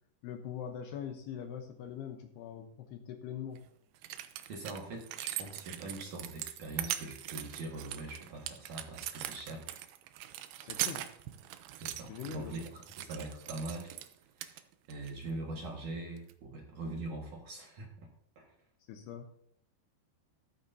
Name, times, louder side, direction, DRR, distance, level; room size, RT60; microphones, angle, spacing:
voice 1, 0.2-3.6 10.6-11.1 12.1-12.6 18.9-19.3, left 8 dB, 75° left, 5 dB, 2.6 m, -42 dB
sound 1, 3.6-3.7 4.0-14.1 14.4-15.1 16.2-16.3, right 13 dB, 85° right, 2.1 m, -41 dB
voice 2, 4.5-9.6 11.8-13.9 14.4-17.9 18.4-18.5, right 2 dB, 55° right, -1 dB, 2.5 m, -42 dB
14.0 x 13.5 x 2.7 m, 0.66 s
omnidirectional pair, 5.3 m